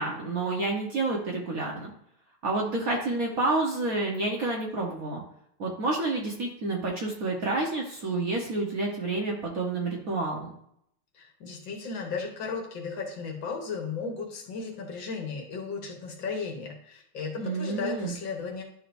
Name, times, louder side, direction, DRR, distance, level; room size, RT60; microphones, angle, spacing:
voice 1, 0.0-1.9 2.4-5.2 5.6-10.5 17.4-18.1, right 2 dB, 50° right, -1 dB, 1.3 m, -29 dB
voice 2, 11.1-18.6, left 4 dB, 65° left, 1 dB, 1.9 m, -35 dB
11.0 x 4.8 x 2.6 m, 0.71 s
omnidirectional pair, 2.3 m